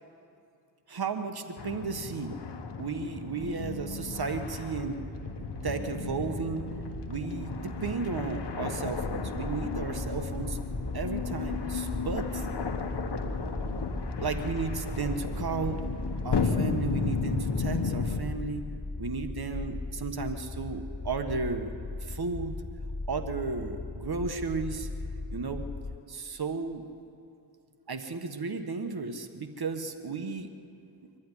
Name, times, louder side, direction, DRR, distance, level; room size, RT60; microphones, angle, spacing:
voice 1, 0.9-2.4 2.8-5.0 5.6-6.6 7.1-10.6 10.9-12.5 14.2-15.8 16.2-18.6 19.0-21.7 22.0-22.6 23.1-24.9 25.3-25.6 26.1-26.8 27.9-30.5, right 4 dB, 55° right, 7 dB, 1.4 m, -34 dB
sound 1, 1.6-18.2, left 5 dB, 65° left, 1.3 m, -34 dB
sound 2, 3.4-16.6, right 2 dB, 10° right, 1.1 m, -42 dB
sound 3, 8.9-26.0, left 3 dB, 15° left, 0.5 m, -38 dB
24.5 x 11.5 x 9.9 m, 2.6 s
cardioid pair, 60°, 44 cm